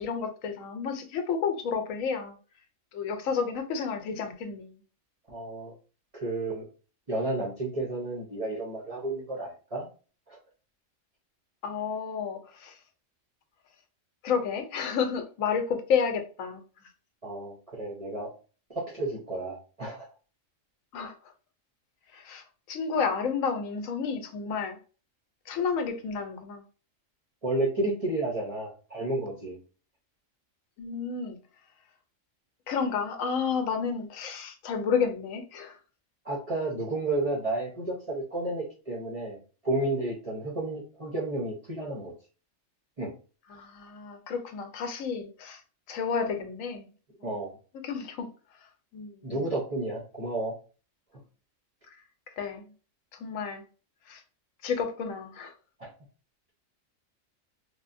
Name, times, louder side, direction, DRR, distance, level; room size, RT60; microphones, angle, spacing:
voice 1, 0.0-2.4 2.9-4.8 11.6-12.8 14.2-16.6 20.9-21.1 22.1-24.8 25.5-26.6 30.8-31.4 32.7-35.8 43.5-45.6 45.9-46.9 47.2-47.3 47.8-48.3 48.9-49.5 51.9-52.0 52.3-52.7 53.1-53.6 54.1-54.2 54.6-55.5, left 6 dB, 85° left, 1.0 m, -31 dB
voice 2, 5.3-5.7 6.2-6.7 7.1-9.9 10.3-10.4 17.2-18.3 18.7-20.0 27.4-29.6 36.2-42.1 43.0-43.1 47.2-47.5 49.2-50.5 55.8-55.9, right 2 dB, 40° right, 0.5 m, -31 dB
3.2 x 2.1 x 2.5 m
omnidirectional pair, 1.4 m